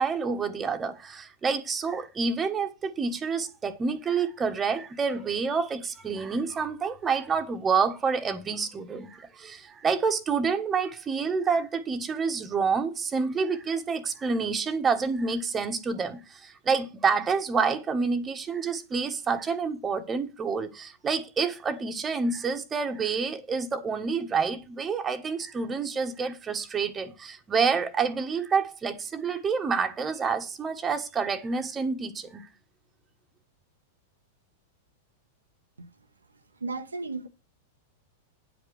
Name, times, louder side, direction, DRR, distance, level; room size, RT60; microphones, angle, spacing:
voice 1, 0.0-32.5, right 5 dB, 20° right, 1.5 m, -28 dB
voice 2, 36.6-37.3, right 3 dB, 80° right, 1.0 m, -34 dB
9.8 x 5.1 x 6.5 m
figure-of-eight pair, 95°, 0 cm